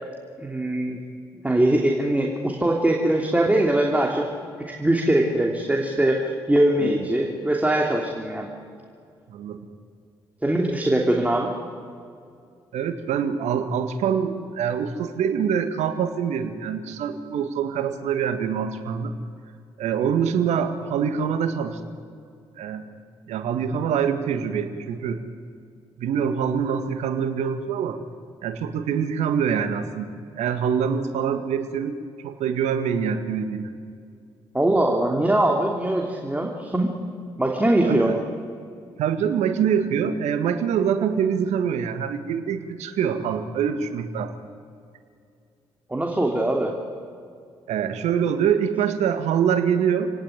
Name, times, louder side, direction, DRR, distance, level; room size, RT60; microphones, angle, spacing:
voice 1, 0.4-1.0 1.4-4.3 4.7-8.5 10.4-11.5 34.5-36.9 37.4-38.2 45.9-46.7, right 1 dB, 10° right, 0 dB, 3.0 m, -22 dB
voice 2, 12.7-19.1 19.8-21.8 22.6-22.9 23.3-25.2 26.0-28.0 28.4-32.0 32.2-33.7 37.8-38.2 39.0-44.3 47.7-50.1, right 7 dB, 70° right, 9 dB, 1.7 m, -25 dB
27.0 x 18.0 x 9.7 m, 2.3 s
hypercardioid pair, 40°, 12 cm